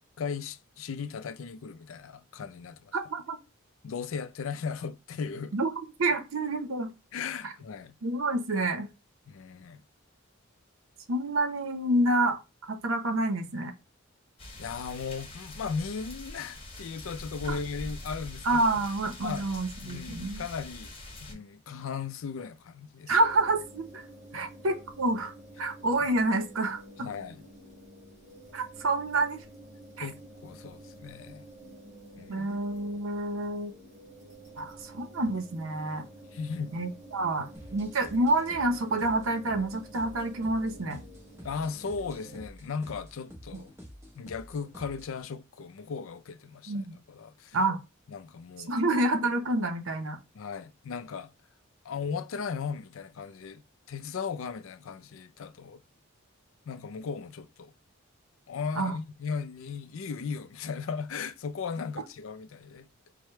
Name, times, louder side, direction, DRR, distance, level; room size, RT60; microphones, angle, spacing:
voice 1, 0.2-3.0 3.8-5.5 7.1-8.0 9.3-9.8 14.6-18.8 19.2-19.5 19.8-23.1 24.3-24.5 26.0-26.1 27.0-27.4 30.0-31.5 32.1-32.5 36.3-36.8 41.4-43.7 44.2-47.6 48.1-48.8 50.3-51.3 51.8-55.8 56.7-57.7 58.5-62.9, left 5 dB, 70° left, 0.4 m, -37 dB
voice 2, 2.9-3.4 5.5-5.7 6.0-6.9 8.0-8.9 11.1-12.4 12.7-13.7 17.5-17.6 18.4-20.4 23.1-24.0 24.3-25.3 25.6-26.8 28.5-29.4 30.0-30.1 32.3-33.7 34.6-36.1 36.7-41.0 43.5-43.6 46.7-47.0 47.5-47.8 48.7-50.2 58.8-59.0, right 2 dB, 75° right, 0.7 m, -28 dB
sound 1, 14.4-21.3, left 1 dB, 25° left, 1.1 m, -43 dB
sound 2, 23.2-42.5, right 1 dB, 35° right, 1.5 m, -50 dB
sound 3, 37.5-45.2, equal, 15° right, 0.9 m, -49 dB
4.8 x 2.1 x 4.3 m
head